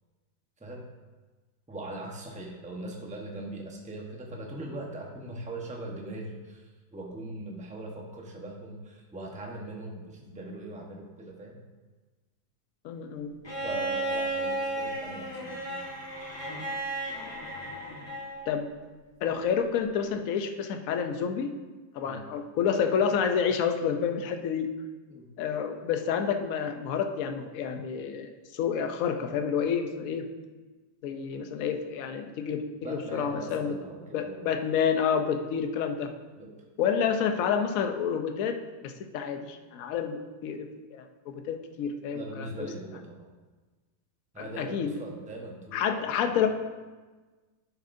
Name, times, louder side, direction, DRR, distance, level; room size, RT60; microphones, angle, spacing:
voice 1, 1.7-11.6 13.6-15.8 22.0-22.2 25.1-25.3 32.8-34.7 36.4-36.5 42.1-43.3 44.3-46.4, right 2 dB, 5° right, -1 dB, 0.8 m, -40 dB
voice 2, 12.8-13.4 18.5-18.7 19.2-21.5 21.9-24.7 25.4-30.3 31.0-33.8 34.1-36.1 36.8-42.5 44.6-44.9 45.7-46.5, left 7 dB, 65° left, 6 dB, 0.9 m, -29 dB
Bowed string instrument, 13.4-18.5 19.9-20.0, right 2 dB, 15° left, 1.2 m, -34 dB
10.5 x 7.1 x 2.6 m, 1.3 s
omnidirectional pair, 1.9 m